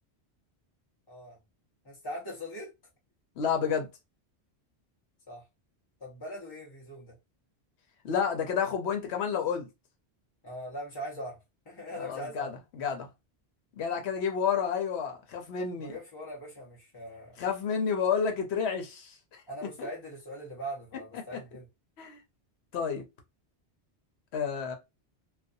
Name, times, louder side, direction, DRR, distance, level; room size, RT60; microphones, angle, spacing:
voice 1, 1.1-1.4 1.8-2.7 5.3-5.4 6.0-7.1 10.4-11.4 11.7-12.5 15.8-17.3 19.5-21.7, equal, 30° left, 0.5 m, -41 dB
voice 2, 3.4-3.9 8.0-9.7 12.0-13.1 13.8-16.0 17.4-19.4 19.8-19.9 22.0-22.2 22.7-23.0 24.3-24.7, left 6 dB, 75° left, 0.9 m, -30 dB
2.5 x 2.2 x 2.5 m
omnidirectional pair, 1.1 m